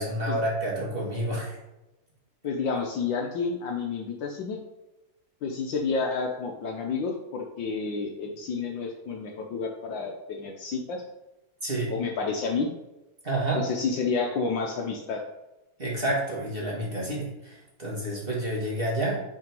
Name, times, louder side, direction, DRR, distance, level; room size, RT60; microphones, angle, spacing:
voice 1, 0.0-1.6 11.6-12.0 13.2-13.6 15.8-19.2, right 1 dB, 25° right, -4 dB, 1.8 m, -29 dB
voice 2, 2.4-4.6 5.4-11.0 11.9-12.7 13.6-15.2, left 4 dB, 65° left, 2 dB, 1.4 m, -30 dB
5.7 x 5.5 x 5.3 m, 0.99 s
omnidirectional pair, 2.4 m